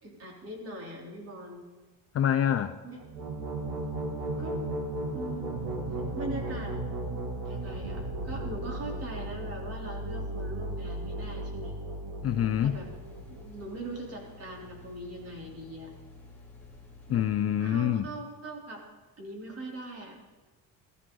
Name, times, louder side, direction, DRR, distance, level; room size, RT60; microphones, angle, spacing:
voice 1, 0.0-1.6 2.8-3.0 4.4-4.6 5.1-5.7 6.1-6.7 7.5-11.7 12.6-12.9 13.4-15.9 17.1-17.2 17.6-18.8 19.2-20.2, right 1 dB, 40° right, -1 dB, 3.5 m, -41 dB
voice 2, 2.1-2.8 12.2-12.7 17.1-18.1, left 10 dB, 40° left, 9 dB, 0.6 m, -26 dB
sound 1, 3.0-13.6, right 1 dB, 90° right, 2.5 m, -35 dB
sound 2, 12.3-17.3, left 3 dB, 5° left, 3.4 m, -51 dB
16.0 x 14.0 x 3.9 m, 1.2 s
cardioid pair, 120°, 37 cm